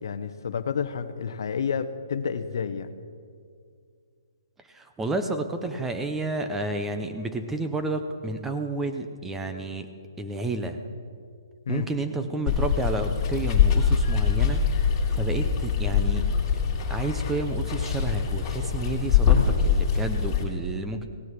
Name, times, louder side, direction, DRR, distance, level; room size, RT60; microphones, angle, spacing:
voice 1, 0.0-2.9 11.7-11.9, left 6 dB, 65° left, 11 dB, 0.8 m, -30 dB
voice 2, 4.7-9.9 10.2-10.8 11.7-14.6 15.1-16.3 16.7-21.1, right 2 dB, 10° right, 7 dB, 0.6 m, -31 dB
Water, 12.5-20.4, left 7 dB, 20° left, 2.6 m, -23 dB
16.5 x 8.4 x 6.1 m, 2.2 s
hypercardioid pair, 160°, 2 cm